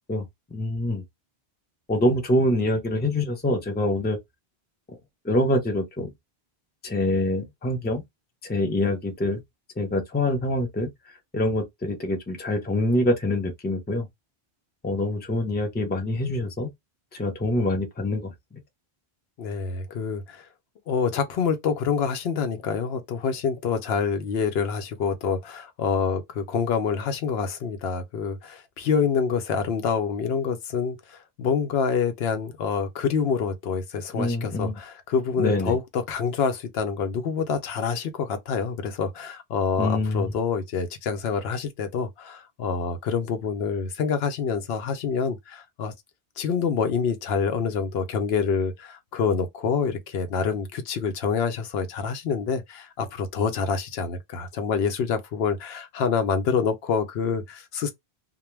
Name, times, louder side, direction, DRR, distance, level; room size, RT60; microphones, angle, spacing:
voice 1, 0.5-1.0 1.9-4.2 4.9-5.0 5.2-6.1 6.8-8.0 8.4-9.4 9.8-10.9 11.3-14.1 14.8-16.7 17.1-18.6 34.1-34.7 35.4-35.8 39.8-40.3, left 1 dB, 15° left, 0.5 m, -25 dB
voice 2, 19.4-20.5 20.9-45.9 46.4-57.9, left 6 dB, 75° left, 0.8 m, -27 dB
2.2 x 2.1 x 3.1 m
omnidirectional pair, 1.1 m